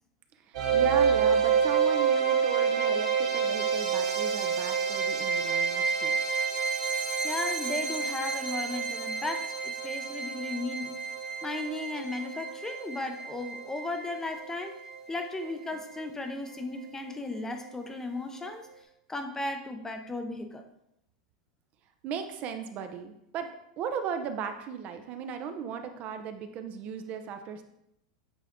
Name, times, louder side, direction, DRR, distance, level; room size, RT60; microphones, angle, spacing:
voice 1, 0.4-6.2 22.0-27.6, right 7 dB, 45° right, 7 dB, 0.6 m, -36 dB
sound 1, 0.5-15.5, right 6 dB, 85° right, 2.2 m, -29 dB
voice 2, 7.2-11.0 11.4-14.8 15.1-18.7 19.1-20.6, left 2 dB, 15° left, 6 dB, 0.7 m, -35 dB
8.2 x 3.5 x 3.6 m, 0.80 s
hypercardioid pair, 110°, 4 cm